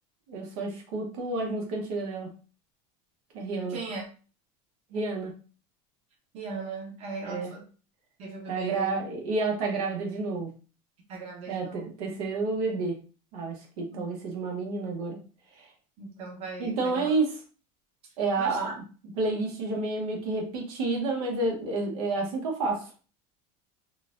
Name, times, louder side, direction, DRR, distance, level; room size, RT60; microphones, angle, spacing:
voice 1, 0.3-2.3 3.3-3.8 4.9-5.3 7.3-7.5 8.5-10.5 11.5-13.0 13.3-15.2 15.6-15.7 16.6-17.3 18.2-18.7 19.2-22.9, right 3 dB, 90° right, 1 dB, 1.1 m, -30 dB
voice 2, 3.7-4.1 6.3-7.6 8.2-9.0 11.1-11.9 13.9-14.1 16.0-17.1 18.4-18.6, right 3 dB, 35° right, -1 dB, 1.0 m, -38 dB
3.9 x 2.4 x 2.5 m, 0.37 s
cardioid pair, 170°, 18 cm